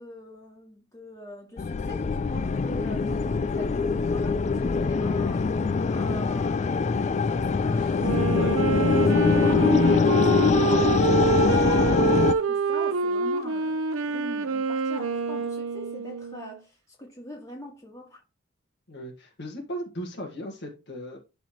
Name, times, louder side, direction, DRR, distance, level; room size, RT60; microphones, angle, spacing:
voice 1, 0.0-8.6 8.9-18.2, equal, 15° left, 2.3 m, -42 dB
sound 1, 1.6-12.3, left 4 dB, 35° left, 0.3 m, -23 dB
Wind instrument woodwind instrument, 8.0-16.5, right 4 dB, 80° right, 0.7 m, -26 dB
voice 2, 18.9-21.2, equal, 55° left, 1.7 m, -37 dB
11.5 x 4.2 x 3.0 m
head